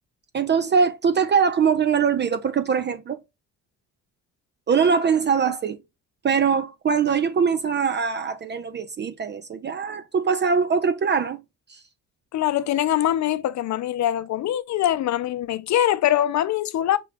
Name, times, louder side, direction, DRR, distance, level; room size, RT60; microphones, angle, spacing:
voice 1, 0.3-3.2 4.7-5.8 6.2-11.4 11.7-11.8, right 6 dB, 35° right, 0.4 m, -22 dB
voice 2, 12.3-17.0, left 12 dB, 60° left, 0.5 m, -23 dB
5.9 x 2.3 x 3.3 m
cardioid pair, 95°, 31 cm